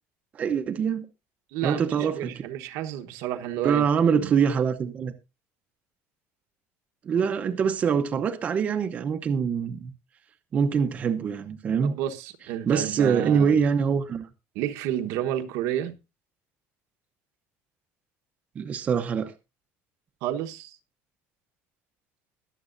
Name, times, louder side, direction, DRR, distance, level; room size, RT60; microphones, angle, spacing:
voice 1, 0.3-1.1 1.6-2.3 3.6-5.1 7.0-9.9 10.5-11.9 12.7-14.3 18.6-19.3, right 7 dB, 25° right, 0.8 m, -24 dB
voice 2, 1.5-3.9 4.2-4.3 11.8-13.6 14.5-15.9 20.2-20.8, right 11 dB, 65° right, 1.1 m, -31 dB
21.5 x 7.6 x 2.6 m
cardioid pair, 175°, 5 cm